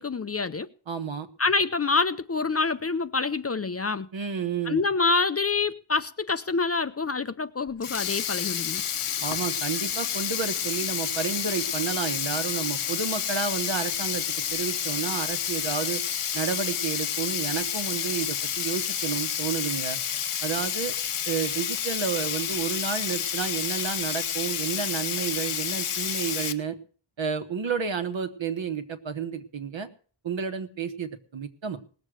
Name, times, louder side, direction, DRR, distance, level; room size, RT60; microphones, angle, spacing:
voice 1, 0.0-0.7 1.4-4.1 4.7-8.8, left 4 dB, 30° left, 0.5 m, -26 dB
voice 2, 0.9-1.3 4.1-4.8 9.2-14.2 14.5-16.0 16.3-20.0 20.4-20.9 21.3-26.8 27.2-29.9 30.2-31.8, right 6 dB, 65° right, 1.4 m, -31 dB
Sink (filling or washing), 7.7-26.5, left 9 dB, 80° left, 1.0 m, -30 dB
18.5 x 7.4 x 6.4 m
wide cardioid pair, 105°, 49 cm